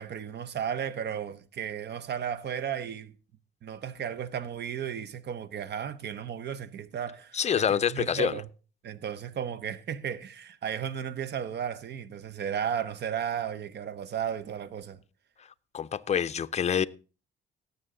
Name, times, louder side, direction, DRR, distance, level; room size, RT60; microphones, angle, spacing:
voice 1, 0.0-3.1 3.6-8.5 8.8-15.0, right 8 dB, 60° right, 0.8 m, -34 dB
voice 2, 7.3-8.3 15.7-16.9, left 8 dB, 35° left, 0.5 m, -26 dB
17.5 x 7.0 x 3.8 m
cardioid pair, 90°, 20 cm